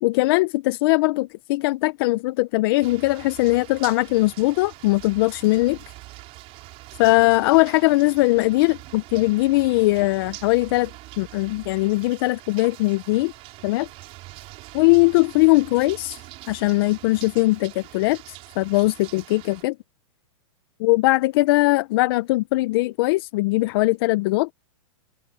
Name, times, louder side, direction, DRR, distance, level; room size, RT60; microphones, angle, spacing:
voice 1, 0.0-5.9 7.0-10.9 11.2-13.3 13.6-13.9 14.7-19.8 20.8-24.5, left 21 dB, 45° left, 0.8 m, -20 dB
sound 1, 2.8-19.6, right 19 dB, 35° right, 6.5 m, -43 dB
hypercardioid pair, 140°, 18 cm